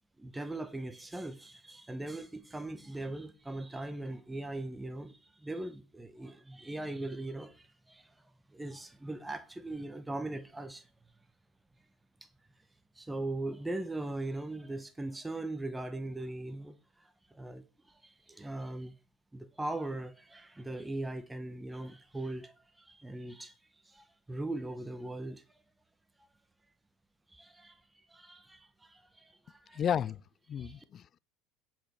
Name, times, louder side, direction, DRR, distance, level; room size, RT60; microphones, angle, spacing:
voice 1, 0.2-8.1 8.5-10.9 12.2-12.3 12.9-18.9 19.3-23.6 23.8-25.6 27.3-27.8 28.1-29.8 30.6-30.8, right 2 dB, 10° right, 0.9 m, -40 dB
voice 2, 29.7-30.2 30.5-31.2, left 9 dB, 40° left, 0.3 m, -33 dB
8.8 x 5.1 x 5.9 m
supercardioid pair, 105°, 0 cm